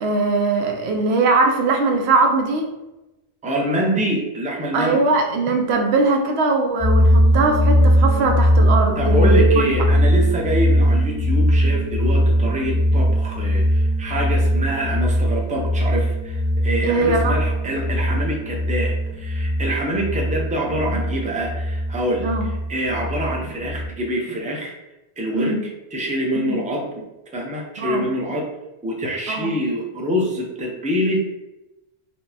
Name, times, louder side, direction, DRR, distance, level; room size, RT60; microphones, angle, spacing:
voice 1, 0.0-2.7 4.7-9.7 16.8-17.4 22.2-22.5 25.3-25.6 26.3-26.6 27.8-28.0 29.3-29.5, right 3 dB, 85° right, 3 dB, 0.9 m, -20 dB
voice 2, 3.4-5.0 8.9-24.7 25.2-25.5 25.9-27.0 27.3-28.5 28.8-31.4, equal, 10° right, -1 dB, 0.4 m, -25 dB
sound 1, 6.8-23.9, equal, 50° right, 1.6 m, -20 dB
4.5 x 2.1 x 2.7 m, 0.99 s
omnidirectional pair, 1.1 m